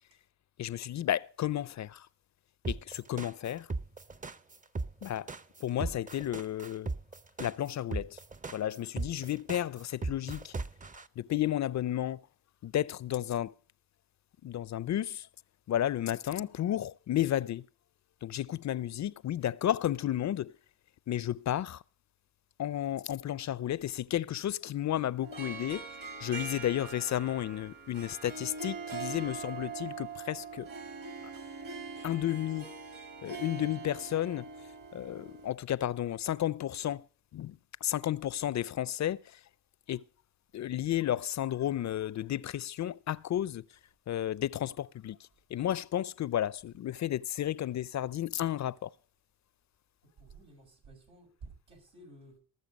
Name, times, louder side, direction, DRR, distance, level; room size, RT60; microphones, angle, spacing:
voice 1, 0.6-2.1 2.7-3.7 5.0-5.3 5.6-6.9 7.4-8.2 8.5-10.5 11.2-12.2 12.6-13.5 14.4-15.3 15.7-17.7 18.2-20.5 21.1-21.8 22.6-30.7 31.2-31.3 32.0-32.7 33.2-34.5 34.9-37.1 37.3-39.4 39.9-40.0 40.5-43.7 44.1-45.2 45.5-48.9, left 12 dB, 45° left, 0.5 m, -32 dB
sound 1, 2.6-11.0, right 3 dB, 20° right, 0.6 m, -37 dB
Harp, 25.2-35.5, right 5 dB, 55° right, 2.3 m, -42 dB
voice 2, 50.0-52.4, right 3 dB, 90° right, 5.7 m, -53 dB
19.0 x 6.7 x 5.2 m
supercardioid pair, 60°, 39 cm